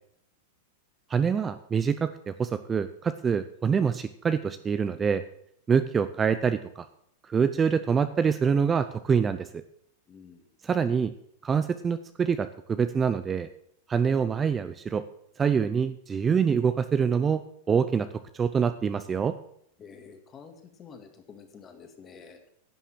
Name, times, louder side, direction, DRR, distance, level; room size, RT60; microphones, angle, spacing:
voice 1, 1.1-5.2 5.7-6.9 7.3-9.6 10.6-11.1 11.4-13.5 13.9-15.0 15.4-18.1 18.3-19.3, right 6 dB, 20° right, 11 dB, 0.5 m, -25 dB
voice 2, 10.1-10.5 19.8-22.5, left 6 dB, 25° left, 6 dB, 2.1 m, -49 dB
11.0 x 7.3 x 7.4 m, 0.71 s
supercardioid pair, 130°, 0 cm